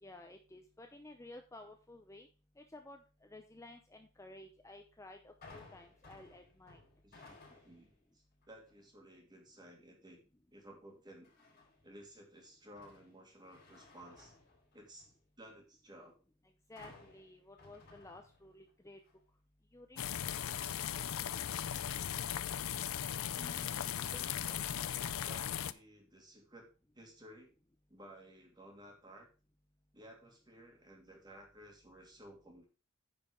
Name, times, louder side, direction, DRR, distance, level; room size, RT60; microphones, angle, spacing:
voice 1, 0.0-2.3 2.6-6.8 16.7-19.0 19.7-20.0, left 2 dB, 15° left, 5 dB, 0.6 m, -54 dB
sound 1, 5.4-7.9 8.4-8.8 11.2-11.9 12.4-15.2 16.8-18.7 19.0-19.1, left 3 dB, 45° left, 4.7 m, -59 dB
voice 2, 7.0-10.2 10.5-11.3 11.8-14.3 14.7-16.2 23.2-26.7 26.9-27.5 27.9-29.3 29.9-32.7, right 1 dB, 20° right, 1 dB, 2.5 m, -56 dB
sound 2, 20.0-25.7, left 9 dB, 80° left, 0.5 m, -38 dB
9.8 x 5.1 x 4.9 m, 0.33 s
head